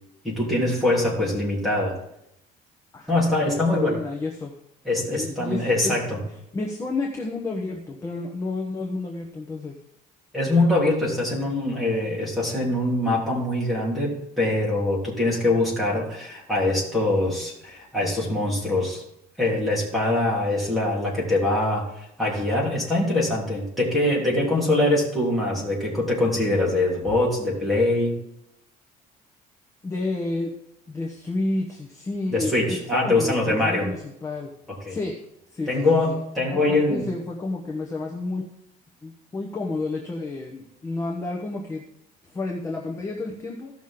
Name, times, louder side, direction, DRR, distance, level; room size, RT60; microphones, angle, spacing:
voice 1, 0.2-2.0 3.1-4.0 4.8-6.2 10.3-19.0 19.4-28.2 32.3-33.9 34.8-35.0 35.7-37.1, left 2 dB, ahead, -7 dB, 3.4 m, -23 dB
voice 2, 2.9-4.5 4.9-6.0 6.5-9.8 29.8-30.5 30.9-34.5 34.9-35.2 35.5-36.1 36.5-38.5 39.0-41.8 42.3-43.7, left 2 dB, 20° left, 0 dB, 1.0 m, -31 dB
15.5 x 6.2 x 3.8 m, 0.79 s
cardioid pair, 165°, 17 cm